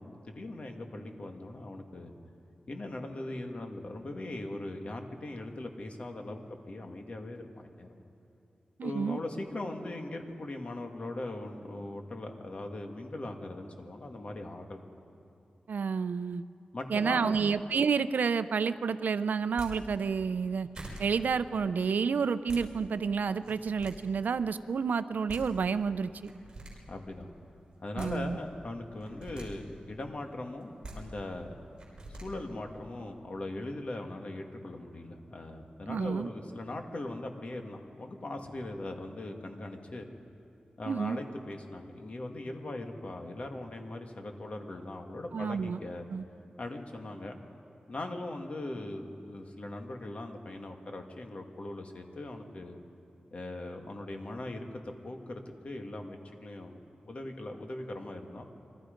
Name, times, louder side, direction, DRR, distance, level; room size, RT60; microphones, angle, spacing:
voice 1, 0.0-2.2 2.7-8.1 8.8-14.8 16.7-17.3 26.9-27.3 27.8-31.5 32.1-40.1 40.8-46.1 46.6-47.4 47.9-52.8 53.3-56.8 57.0-58.5, left 2 dB, 45° left, 3 dB, 1.9 m, -40 dB
voice 2, 8.8-9.2 15.7-16.4 16.9-20.7 21.0-26.3 28.0-28.4 35.9-36.3 40.9-41.2 45.3-45.8 46.1-46.2, right 5 dB, 80° right, 13 dB, 0.6 m, -30 dB
sound 1, 19.4-19.7 20.4-20.5 20.7-21.0 22.2-22.6 23.3-23.9 25.0-25.1 25.3-25.4 26.2-26.7 27.7-28.1 29.0-29.5 30.6-30.9 31.8-32.2, right 2 dB, 25° right, 5.8 m, -44 dB
27.5 x 23.0 x 5.2 m, 2.7 s
wide cardioid pair, 130°, 3 cm